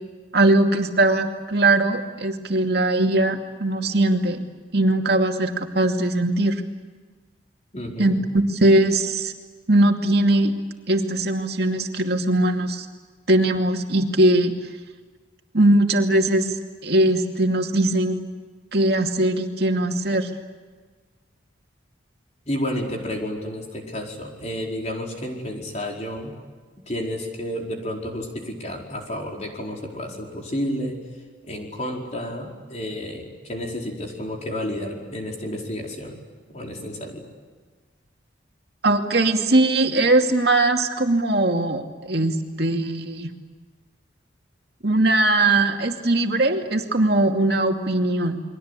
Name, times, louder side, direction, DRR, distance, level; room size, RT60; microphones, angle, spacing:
voice 1, 0.3-4.4 4.7-6.6 8.0-9.3 9.7-10.5 10.9-12.9 13.3-14.5 15.5-16.5 16.8-18.2 18.7-20.3 38.8-43.3 44.8-48.4, right 2 dB, 55° right, 3 dB, 2.5 m, -20 dB
voice 2, 7.7-8.2 22.5-26.3 26.9-31.0 31.4-36.2 36.5-37.2, equal, 35° left, 0 dB, 4.7 m, -31 dB
29.5 x 23.0 x 8.3 m, 1.4 s
head